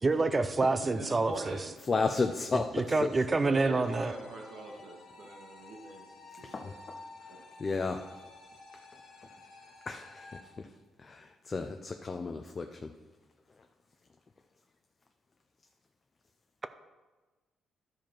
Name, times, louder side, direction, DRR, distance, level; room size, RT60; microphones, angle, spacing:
voice 1, 0.0-1.6 2.5-4.1, right 3 dB, 30° right, 11 dB, 0.5 m, -27 dB
voice 2, 0.7-1.7 3.4-6.1 6.4-6.7 7.3-7.4, right 2 dB, 70° right, 0 dB, 2.0 m, -42 dB
voice 3, 1.9-3.1 6.4-7.0 7.6-8.0 9.9-10.7 11.0-12.9, left 4 dB, 35° left, 5 dB, 0.5 m, -33 dB
sound 1, 3.8-10.4, left 3 dB, 75° left, 1.9 m, -52 dB
12.0 x 5.0 x 4.4 m, 1.3 s
cardioid pair, 90°, 0 cm